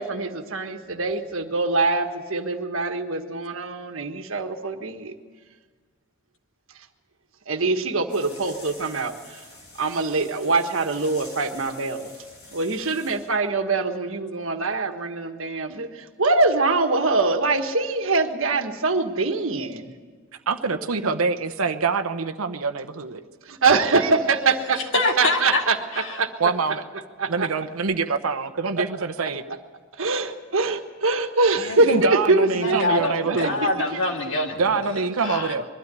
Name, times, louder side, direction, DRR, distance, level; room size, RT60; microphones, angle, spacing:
voice 1, 0.0-5.1 7.5-9.4 9.8-12.1 12.5-19.9 23.5-24.8 25.2-25.8 26.2-26.3 27.2-27.5 28.8-28.9 30.0-33.7, right 3 dB, 70° right, 6 dB, 1.5 m, -23 dB
sound 1, 8.1-13.3, left 2 dB, 90° left, 7.3 m, -46 dB
voice 2, 20.5-23.2 26.4-26.8 27.3-29.4 31.8-33.7 34.6-35.7, right 4 dB, 85° right, 9 dB, 0.9 m, -25 dB
voice 3, 23.8-24.5 24.8-26.2 31.6-32.0 32.5-34.9 35.2-35.5, left 2 dB, 60° left, 1 dB, 2.4 m, -26 dB
22.0 x 13.0 x 9.5 m, 1.5 s
head